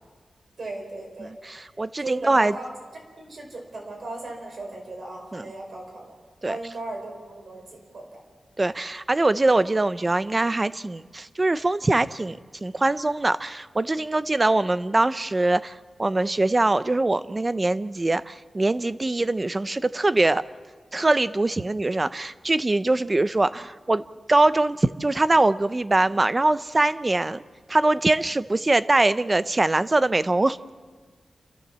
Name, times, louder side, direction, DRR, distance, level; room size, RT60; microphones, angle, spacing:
voice 1, 0.6-1.3 2.0-2.7 3.2-6.2 6.4-8.2, right 2 dB, 55° right, 1 dB, 5.0 m, -37 dB
voice 2, 1.2-2.5 5.3-5.4 6.4-6.6 8.6-20.4 20.9-24.0 24.3-27.4 27.7-30.7, right 2 dB, 20° right, 15 dB, 0.5 m, -23 dB
28.0 x 14.0 x 7.4 m, 1.5 s
wide cardioid pair, 175°, 0 cm